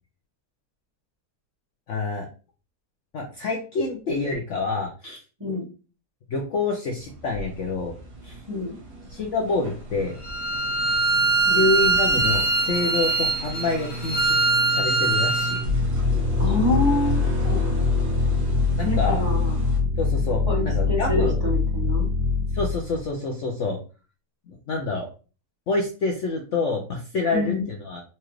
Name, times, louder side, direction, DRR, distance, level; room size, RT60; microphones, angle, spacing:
voice 1, 1.9-2.3 3.1-5.2 6.3-7.9 8.2-8.4 9.1-10.2 11.5-14.3 14.7-15.6 18.8-19.2 20.0-21.4 22.5-23.8 24.7-25.1 25.7-28.0, left 3 dB, 60° left, 1 dB, 0.8 m, -27 dB
sound 1, 7.0-19.8, right 2 dB, 85° right, 1.6 m, -35 dB
Bowed string instrument, 10.2-15.6, right 3 dB, 80° left, 1.7 m, -22 dB
sound 2, 15.6-23.1, left 4 dB, 35° right, 1.2 m, -23 dB
voice 2, 16.4-17.6 18.8-19.6 20.5-22.1 27.3-27.7, left 2 dB, 20° right, -4 dB, 0.8 m, -26 dB
4.3 x 2.5 x 3.0 m, 0.36 s
omnidirectional pair, 1.8 m